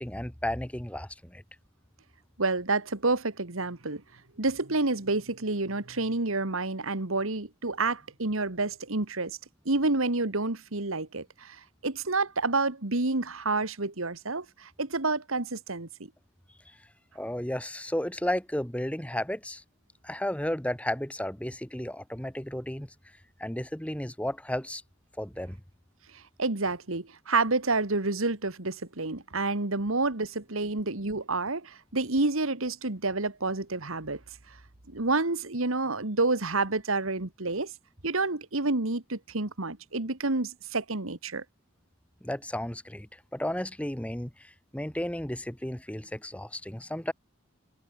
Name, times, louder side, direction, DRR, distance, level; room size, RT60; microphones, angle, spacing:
voice 1, 0.0-1.4 17.1-19.6 20.0-22.9 23.4-24.8 25.2-25.6 42.2-47.1, left 1 dB, 5° left, 1.0 m, -33 dB
voice 2, 2.4-4.0 4.4-9.4 9.7-15.9 26.1-34.2 34.9-37.7 38.0-41.4, right 3 dB, 70° right, 1.9 m, -29 dB
head